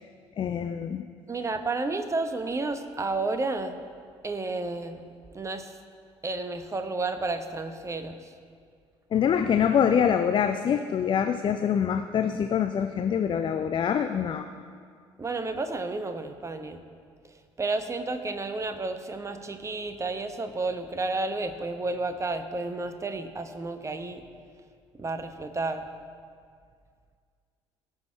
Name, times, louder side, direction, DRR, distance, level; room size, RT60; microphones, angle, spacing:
voice 1, 0.4-1.0 9.1-14.4, left 8 dB, 35° left, 8 dB, 0.5 m, -25 dB
voice 2, 1.3-3.8 4.2-5.1 5.3-5.7 6.2-8.3 15.2-16.8 17.6-24.2 25.0-25.9, right 3 dB, 20° right, 8 dB, 0.9 m, -31 dB
17.5 x 6.3 x 4.5 m, 2.1 s
figure-of-eight pair, 55°, 14 cm